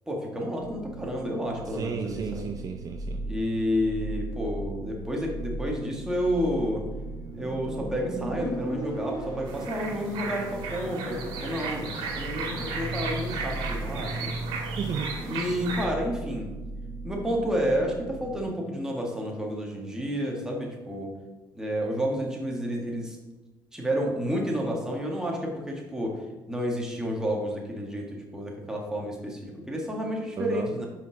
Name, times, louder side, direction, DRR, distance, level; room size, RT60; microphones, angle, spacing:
voice 1, 0.1-2.5 3.2-6.8 7.3-14.3 15.2-16.5 17.0-21.1 21.5-23.2 23.7-30.9, equal, 5° right, -1 dB, 1.6 m, -30 dB
sound 1, 0.5-18.5, right 2 dB, 25° right, 2.2 m, -39 dB
voice 2, 1.8-3.2 14.8-15.1 30.4-30.7, right 6 dB, 45° right, 5 dB, 0.5 m, -32 dB
Motorcycle, 6.7-10.1, equal, 60° right, 2.4 m, -37 dB
sound 2, 9.4-15.9, right 4 dB, 80° right, 1.6 m, -34 dB
5.5 x 5.4 x 4.9 m, 1.2 s
cardioid pair, 115°, 8 cm